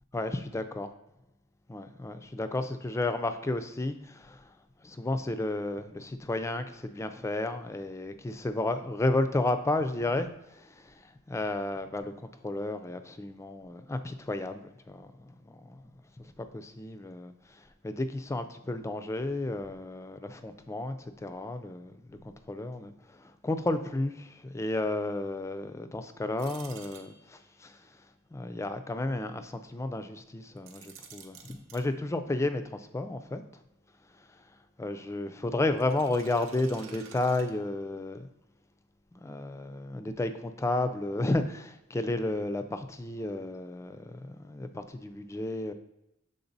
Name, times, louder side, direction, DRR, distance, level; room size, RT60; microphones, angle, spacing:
voice 1, 0.1-0.9 1.7-4.5 4.8-15.9 16.2-22.2 22.5-27.8 28.3-33.4 34.8-38.3 39.1-45.7, left 2 dB, 15° left, 9 dB, 0.4 m, -32 dB
sound 1, 26.4-27.6 30.6-31.9 35.8-38.0, right 6 dB, 80° right, 0.8 m, -50 dB
7.0 x 3.6 x 4.0 m, 0.87 s
head